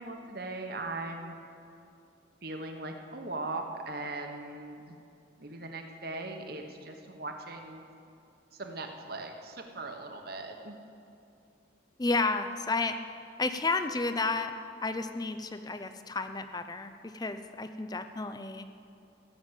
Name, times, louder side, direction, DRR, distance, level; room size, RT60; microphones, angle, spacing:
voice 1, 0.0-1.3 2.4-4.9 5.4-7.8 8.5-10.8, right 2 dB, 50° right, 4 dB, 1.2 m, -39 dB
voice 2, 12.0-13.0 13.4-14.5 14.8-18.7, left 3 dB, 20° left, 10 dB, 0.5 m, -31 dB
15.5 x 7.2 x 8.1 m, 2.6 s
head